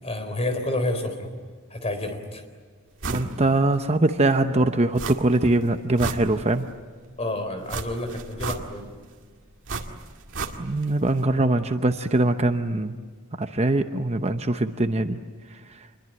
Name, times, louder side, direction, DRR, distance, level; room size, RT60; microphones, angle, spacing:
voice 1, 0.0-1.3 1.7-2.4 7.2-8.9, left 1 dB, 30° left, 7 dB, 4.0 m, -29 dB
sound 1, 3.0-3.3 3.7-3.8 5.0-5.5 5.8-6.7 7.7-9.0 9.7-10.9 11.2-11.3, right 3 dB, 60° right, 2.1 m, -32 dB
voice 2, 3.1-6.7 10.6-13.0 13.4-15.2 15.5-15.6, right 2 dB, 30° right, 8 dB, 0.8 m, -22 dB
27.5 x 22.0 x 9.2 m, 1.5 s
head